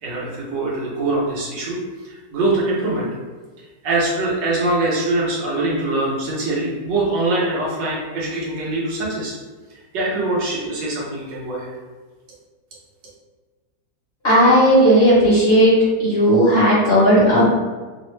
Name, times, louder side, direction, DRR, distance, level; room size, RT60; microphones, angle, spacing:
voice 1, 0.0-1.8 2.0-3.1 3.8-9.3 9.9-11.7, right 2 dB, 80° right, -4 dB, 1.5 m, -23 dB
voice 2, 14.2-15.7 16.0-17.5, equal, 45° left, -9 dB, 1.0 m, -14 dB
3.5 x 2.0 x 3.1 m, 1.3 s
omnidirectional pair, 1.9 m